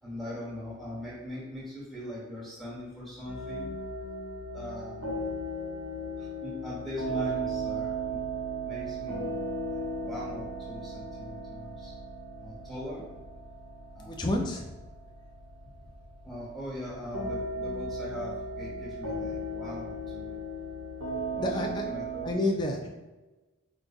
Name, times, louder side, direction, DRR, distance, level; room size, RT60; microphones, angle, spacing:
voice 1, 0.0-3.7 4.5-5.2 6.2-8.2 8.6-11.9 12.4-13.0 13.9-14.2 16.2-20.4 21.1-22.3, left 1 dB, ahead, -7 dB, 1.3 m, -41 dB
sound 1, 3.3-22.3, right 2 dB, 85° right, 1.0 m, -36 dB
voice 2, 14.0-14.7 21.4-21.8 22.2-22.9, left 1 dB, 20° left, 1 dB, 0.3 m, -29 dB
4.8 x 2.5 x 2.3 m, 1.1 s
head